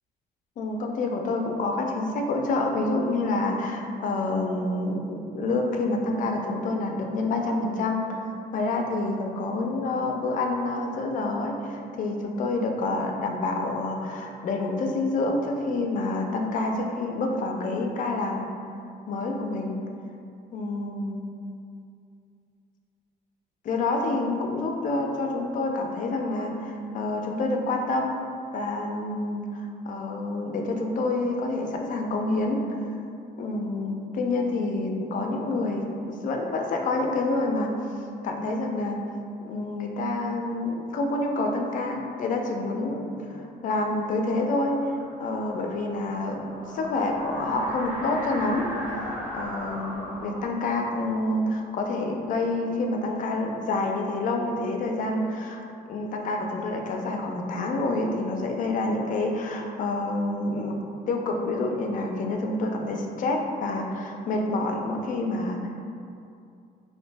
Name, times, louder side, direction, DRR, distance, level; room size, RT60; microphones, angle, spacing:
voice 1, 0.6-8.2 8.5-18.5 19.1-19.8 20.5-21.2 23.6-28.1 28.5-32.9 33.4-37.7 38.2-39.0 39.4-44.9 45.2-48.7 49.3-55.6 55.9-60.7 61.1-65.8, left 2 dB, 50° left, 2 dB, 0.4 m, -28 dB
sound 1, 44.2-52.7, equal, 10° right, 0.6 m, -38 dB
2.6 x 2.0 x 3.3 m, 2.5 s
cardioid pair, 115°, 17 cm